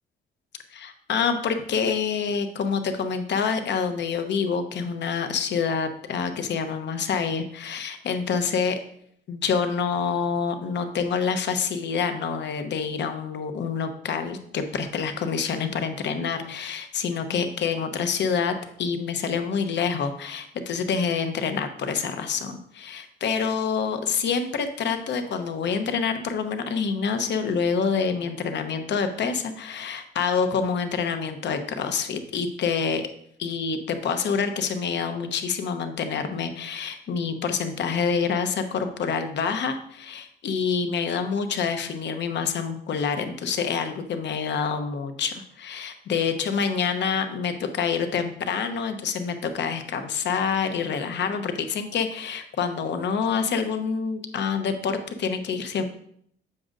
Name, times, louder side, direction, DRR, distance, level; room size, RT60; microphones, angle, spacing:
voice 1, 0.7-8.8 9.3-33.0 33.4-55.8, left 6 dB, 65° left, 8 dB, 0.8 m, -27 dB
7.5 x 6.4 x 2.5 m, 0.67 s
cardioid pair, 90°, 20 cm